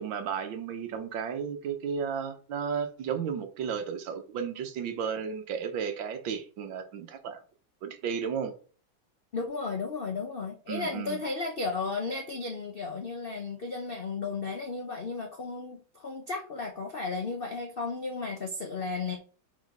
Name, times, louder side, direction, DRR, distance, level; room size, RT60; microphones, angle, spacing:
voice 1, 0.0-7.4 7.8-8.5 10.7-11.2, right 7 dB, 70° right, 1.6 m, -33 dB
voice 2, 9.3-19.2, left 4 dB, 75° left, 0.5 m, -34 dB
5.3 x 4.4 x 5.2 m
omnidirectional pair, 2.3 m